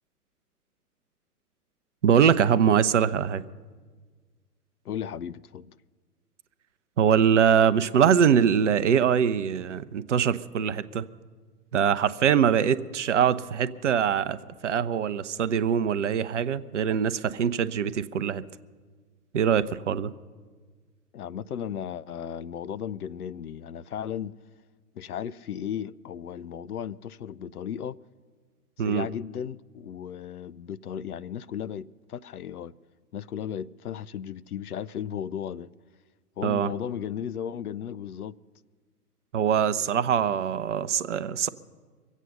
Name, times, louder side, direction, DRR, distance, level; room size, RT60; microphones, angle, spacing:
voice 1, 2.0-3.4 7.0-11.1 11.7-18.4 19.3-20.1 28.8-29.1 36.4-36.7 39.3-41.5, right 8 dB, 50° right, 0.6 m, -23 dB
voice 2, 4.8-5.8 21.1-24.3 25.0-28.0 28.8-32.7 33.1-35.7 36.4-38.3, left 9 dB, 65° left, 0.5 m, -35 dB
23.5 x 8.3 x 6.6 m
figure-of-eight pair, 115°, 48 cm